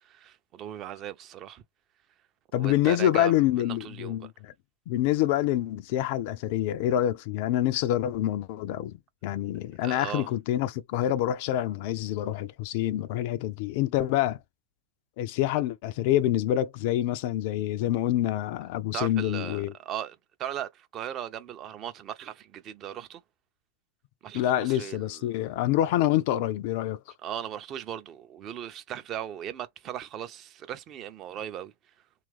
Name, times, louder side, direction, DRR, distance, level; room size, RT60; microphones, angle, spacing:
voice 1, 0.0-1.6 2.5-4.3 9.8-10.3 18.9-23.2 24.2-25.4 27.2-31.7, right 10 dB, 30° right, 0.5 m, -38 dB
voice 2, 2.5-4.5 4.9-9.0 9.2-14.4 15.2-19.7 24.3-27.0, left 12 dB, 50° left, 0.3 m, -26 dB
2.8 x 2.4 x 3.4 m
figure-of-eight pair, 90°, 0 cm